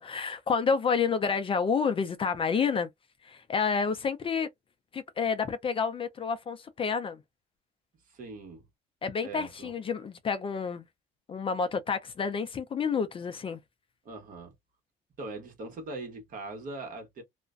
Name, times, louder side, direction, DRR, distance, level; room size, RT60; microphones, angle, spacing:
voice 1, 0.0-2.9 3.2-4.5 4.9-7.2 9.0-10.8 11.3-13.6, left 5 dB, 30° left, 0.4 m, -29 dB
voice 2, 8.1-8.6 9.2-9.7 14.0-14.5 15.2-17.2, right 2 dB, 55° right, 1.1 m, -41 dB
2.4 x 2.1 x 2.4 m
cardioid pair, 110°, 17 cm